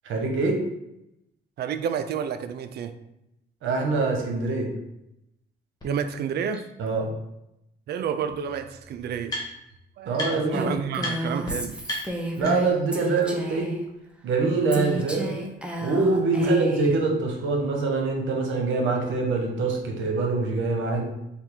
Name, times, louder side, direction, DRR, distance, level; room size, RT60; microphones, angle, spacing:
voice 1, 0.0-0.6 3.6-4.7 6.8-7.1 10.1-10.7 12.4-13.7 14.2-15.3 15.8-21.2, right 3 dB, 75° right, 1 dB, 0.9 m, -24 dB
voice 2, 1.6-2.9 5.8-6.7 7.9-9.4 10.0-11.8 16.4-16.7, right 7 dB, 55° right, 10 dB, 0.4 m, -30 dB
sound 1, 5.8-5.9 6.5-6.6 7.9-8.0 8.2-9.8 10.1-10.6 11.0-11.1 11.4-11.5 11.8-12.9, left 1 dB, 20° left, 1.4 m, -35 dB
Female speech woman speaking, 10.5-13.8 14.7-16.9, equal, 5° right, 0.6 m, -32 dB
3.5 x 2.4 x 4.4 m, 0.84 s
cardioid pair, 90°, 20 cm